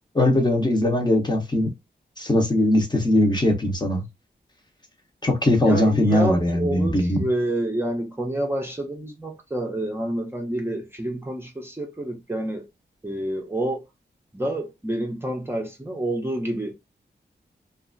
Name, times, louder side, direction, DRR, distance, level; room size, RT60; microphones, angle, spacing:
voice 1, 0.1-1.7 2.2-4.0 5.2-7.3, left 1 dB, 25° left, 0.8 m, -20 dB
voice 2, 5.6-12.6 13.0-13.8 14.3-16.7, right 1 dB, 15° right, 0.6 m, -28 dB
2.7 x 2.4 x 2.5 m
wide cardioid pair, 90°, 18 cm